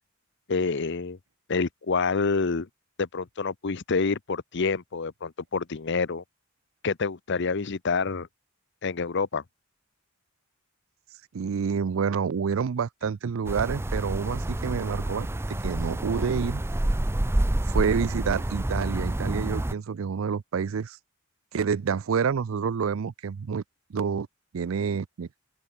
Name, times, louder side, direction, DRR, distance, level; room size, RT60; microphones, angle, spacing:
voice 1, 0.5-1.2 1.5-2.7 3.0-6.2 6.8-8.3 8.8-9.4, left 4 dB, 60° left, 0.8 m, -27 dB
voice 2, 11.3-16.6 17.7-21.0 21.5-23.6 23.9-24.3 24.5-25.3, right 6 dB, 75° right, 0.4 m, -28 dB
sound 1, 13.4-19.7, right 1 dB, 10° right, 0.5 m, -28 dB
open air
head